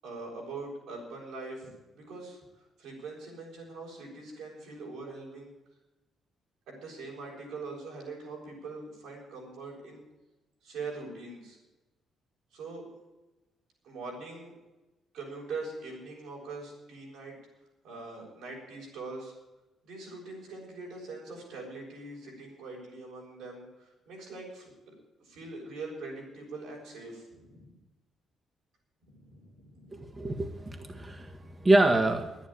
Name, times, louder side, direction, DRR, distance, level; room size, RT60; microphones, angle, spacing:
voice 1, 0.0-2.4 2.8-5.5 6.7-10.0 10.6-11.6 12.5-12.8 13.8-14.5 15.1-17.3 17.8-19.3 19.8-24.9 25.2-27.8 29.0-30.1, right 3 dB, 85° right, -2 dB, 7.2 m, -42 dB
voice 2, 29.9-32.5, right 2 dB, 20° right, 5 dB, 1.4 m, -26 dB
11.0 x 10.5 x 10.0 m, 1.1 s
cardioid pair, 90°, 0 cm